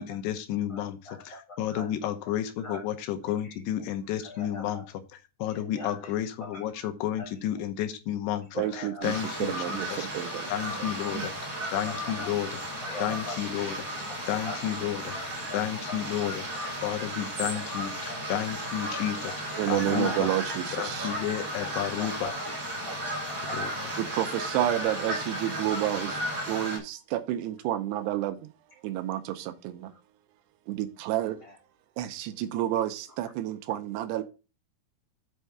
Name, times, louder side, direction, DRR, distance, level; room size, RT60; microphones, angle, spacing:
voice 1, 0.0-4.8 5.4-10.1 10.5-12.6 13.0-15.2 15.5-19.3 19.7-20.3 20.7-22.3 23.5-23.9, left 11 dB, 80° left, 2.9 m, -32 dB
voice 2, 0.7-1.4 1.7-2.1 2.6-2.8 3.4-3.6 4.2-4.9 5.5-6.6 7.2-7.3 8.6-9.0 9.6-9.7 11.2-11.3 11.8-14.7 15.2-16.3 16.6-16.7 17.0-17.1 17.7-18.4 18.9-20.4 21.8-23.8 31.2-31.5, left 2 dB, 40° left, 1.6 m, -43 dB
voice 3, 8.6-9.1 9.4-10.5 11.1-11.3 19.6-21.1 24.0-28.5 28.8-29.9 30.7-31.4 32.0-34.2, right 13 dB, 80° right, 2.8 m, -30 dB
sound 1, 9.0-26.8, equal, 30° right, 4.0 m, -34 dB
7.3 x 4.6 x 6.5 m
omnidirectional pair, 4.8 m